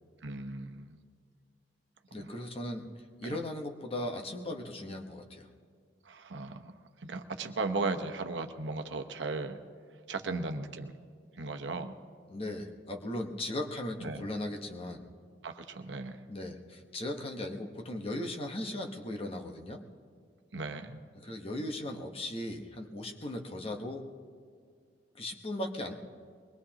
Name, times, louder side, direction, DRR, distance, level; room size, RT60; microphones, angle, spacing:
voice 1, 0.2-1.0 2.2-2.3 3.2-3.4 6.0-6.7 7.0-9.6 10.1-10.9 11.3-12.0 14.0-14.2 15.4-16.2 20.5-21.0, right 3 dB, 80° right, 6 dB, 1.0 m, -36 dB
voice 2, 2.1-2.9 3.2-5.5 10.3-10.5 12.3-15.0 16.3-19.8 21.2-24.1 25.1-25.9, left 1 dB, 35° left, 2 dB, 1.2 m, -38 dB
23.0 x 20.5 x 2.9 m, 2.1 s
head